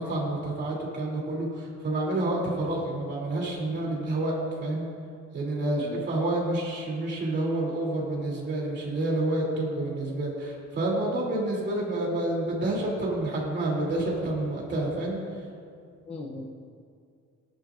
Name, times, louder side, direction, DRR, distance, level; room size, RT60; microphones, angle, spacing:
voice 1, 0.0-4.3 4.6-4.8 5.3-15.2, right 2 dB, 35° right, -3 dB, 2.9 m, -29 dB
voice 2, 5.6-6.1 16.1-16.5, left 2 dB, 20° left, 0 dB, 0.7 m, -35 dB
17.5 x 11.5 x 2.5 m, 2.3 s
cardioid pair, 170°, 30 cm